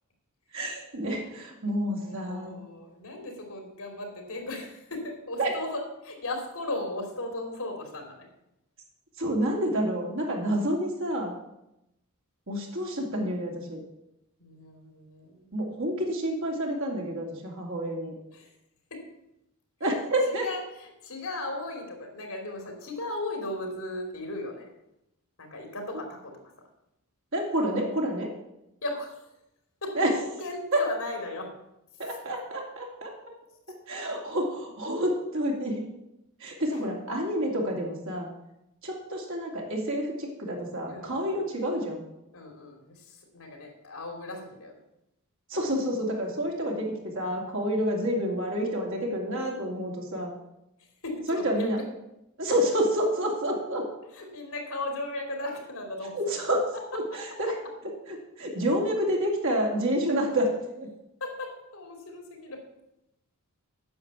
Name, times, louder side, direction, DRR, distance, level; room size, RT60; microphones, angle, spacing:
voice 1, 0.5-2.6 5.4-5.5 9.2-11.3 12.5-13.8 15.5-18.1 19.8-20.5 27.3-28.3 29.9-30.1 30.7-30.8 32.0-33.1 33.9-35.8 36.4-38.3 38.8-42.0 45.5-50.3 51.3-51.8 52.4-53.8 56.1-56.6 56.9-57.5 58.4-60.5 60.8-60.9, equal, 60° right, -1 dB, 2.9 m, -28 dB
voice 2, 2.0-8.3 14.4-15.5 18.3-18.5 18.9-19.1 19.8-19.9 20.4-24.7 25.4-26.3 28.8-29.3 29.8-31.5 36.7-36.8 40.9-41.3 42.3-44.8 50.8-51.7 54.1-56.4 57.1-57.2 61.2-62.6, left 2 dB, 75° left, 3 dB, 3.0 m, -37 dB
9.7 x 6.8 x 8.2 m, 0.86 s
head